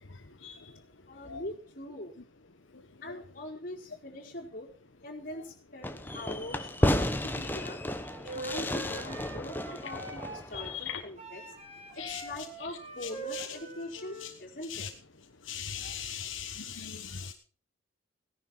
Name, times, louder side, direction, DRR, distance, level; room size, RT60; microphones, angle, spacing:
voice 1, 1.1-2.1 3.0-4.7 5.0-7.8 8.2-11.4 12.0-14.9, left 1 dB, 45° left, -1 dB, 4.2 m, -42 dB
Fireworks, 5.8-11.1, left 1 dB, 10° left, 1.1 m, -32 dB
Wind instrument woodwind instrument, 8.0-10.8 11.2-14.3, right 2 dB, 35° right, 5.1 m, -43 dB
voice 2, 10.5-11.0 12.0-12.2 13.3-13.5 14.7-14.9 15.5-17.3, left 8 dB, 75° left, 5 dB, 1.2 m, -38 dB
17.5 x 11.0 x 5.6 m, 0.39 s
head